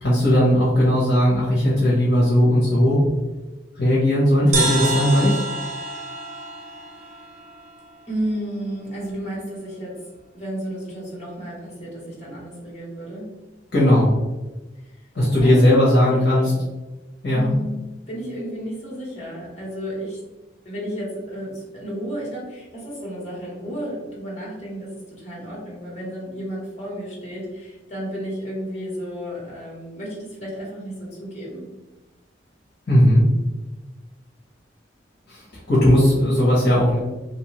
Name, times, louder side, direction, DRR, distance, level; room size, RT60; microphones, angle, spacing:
voice 1, 0.0-3.0 3.8-5.4 13.7-14.1 15.1-16.5 17.2-17.5 32.9-33.2 35.3-35.4 35.7-37.0, equal, 60° left, -7 dB, 1.0 m, -17 dB
sound 1, 4.5-8.0, right 2 dB, 40° right, 0.6 m, -28 dB
voice 2, 8.1-10.0 10.3-13.3 14.8-15.0 15.4-16.6 17.3-17.7 18.1-20.2 20.6-31.6, equal, 40° left, -5 dB, 1.3 m, -32 dB
2.9 x 2.6 x 3.1 m, 1.1 s
head